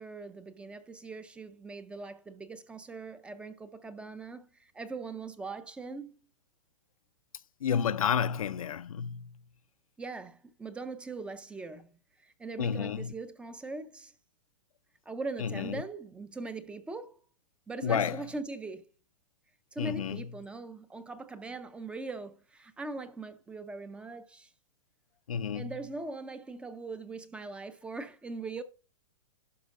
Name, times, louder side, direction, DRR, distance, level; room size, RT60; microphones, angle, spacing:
voice 1, 0.0-6.2 10.0-14.1 15.1-17.2 17.7-18.9 19.7-24.5 25.5-28.6, right 3 dB, 5° right, 0.4 m, -41 dB
voice 2, 7.6-9.4 12.6-13.1 15.4-15.8 17.8-18.2 19.8-20.3 25.3-25.7, left 7 dB, 90° left, 0.6 m, -30 dB
11.5 x 5.1 x 3.6 m
hypercardioid pair, 145°, 17 cm